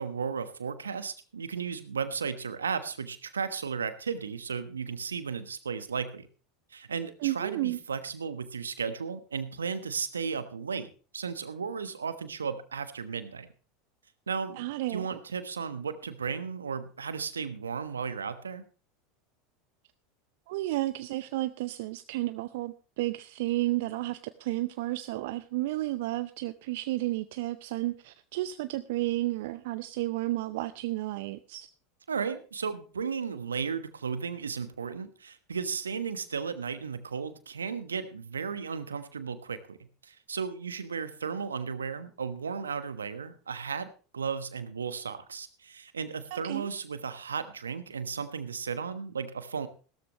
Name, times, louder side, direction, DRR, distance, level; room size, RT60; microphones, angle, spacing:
voice 1, 0.0-6.3 6.7-10.9 11.1-13.5 14.3-18.6 32.1-39.8 40.0-49.7, right 6 dB, 85° right, 12 dB, 1.2 m, -35 dB
voice 2, 7.2-7.8 14.6-15.1 20.5-31.7 46.3-46.7, right 17 dB, 65° right, 13 dB, 0.6 m, -32 dB
16.5 x 13.0 x 3.1 m, 0.37 s
figure-of-eight pair, 80°, 0 cm